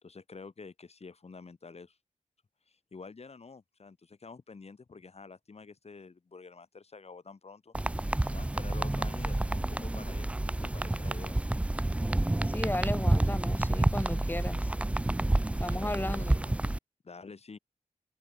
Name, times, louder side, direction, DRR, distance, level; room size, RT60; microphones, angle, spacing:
voice 1, 0.0-2.0 2.7-7.7 8.2-11.4 15.5-16.5 17.0-17.6, left 4 dB, 45° left, 3.0 m, -48 dB
sound 1, 7.7-16.8, right 1 dB, 10° right, 0.3 m, -29 dB
voice 2, 12.4-14.7 15.6-16.4, left 1 dB, 15° left, 1.9 m, -35 dB
wide cardioid pair, 130°, 14 cm